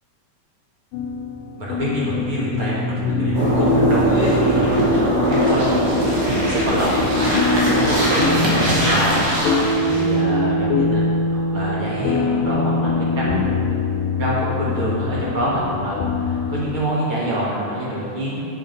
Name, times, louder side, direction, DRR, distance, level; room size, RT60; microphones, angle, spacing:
sound 1, 0.9-16.8, left 2 dB, 80° left, 2.2 m, -23 dB
voice 1, 1.6-9.2 9.5-11.0 11.3-13.6 14.2-18.4, equal, 50° right, -7 dB, 1.8 m, -26 dB
sound 2, 3.3-10.1, equal, 65° right, 3.8 m, -20 dB
8.4 x 7.6 x 5.3 m, 2.8 s
omnidirectional pair, 4.4 m